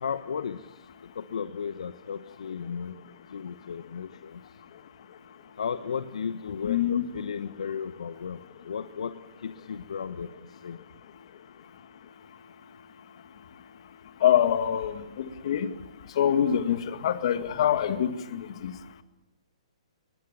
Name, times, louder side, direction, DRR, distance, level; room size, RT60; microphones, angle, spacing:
voice 1, 0.0-0.6 1.2-3.0 3.3-4.4 5.6-8.4 8.6-10.3 10.6-10.8, left 6 dB, 75° left, 10 dB, 1.0 m, -34 dB
voice 2, 6.6-7.0 14.2-15.7 16.2-18.7, left 9 dB, 55° left, 9 dB, 2.0 m, -25 dB
23.5 x 21.0 x 7.2 m, 1.0 s
hypercardioid pair, 135°, 3 cm